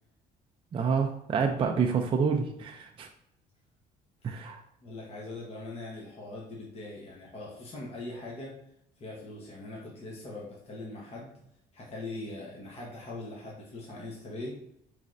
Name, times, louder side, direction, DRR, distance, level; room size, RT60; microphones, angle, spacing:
voice 1, 0.7-3.1 4.2-4.6, right 6 dB, 30° right, 2 dB, 0.4 m, -28 dB
voice 2, 4.8-8.5 9.0-11.5 11.7-14.6, left 2 dB, 40° left, -3 dB, 1.0 m, -41 dB
5.0 x 3.2 x 2.5 m, 0.76 s
cardioid pair, 110°, 17 cm